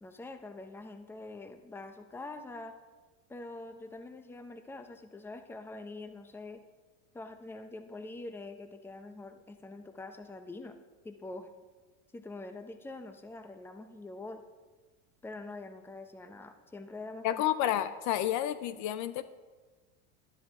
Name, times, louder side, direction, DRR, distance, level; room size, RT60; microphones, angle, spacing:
voice 1, 0.0-2.7 3.3-6.6 7.1-10.8 11.0-11.5 12.1-14.4 15.2-17.4, left 2 dB, 5° left, 8 dB, 0.7 m, -45 dB
voice 2, 17.2-19.2, left 12 dB, 45° left, 13 dB, 0.5 m, -30 dB
12.0 x 11.0 x 3.6 m, 1.3 s
supercardioid pair, 115°, 42 cm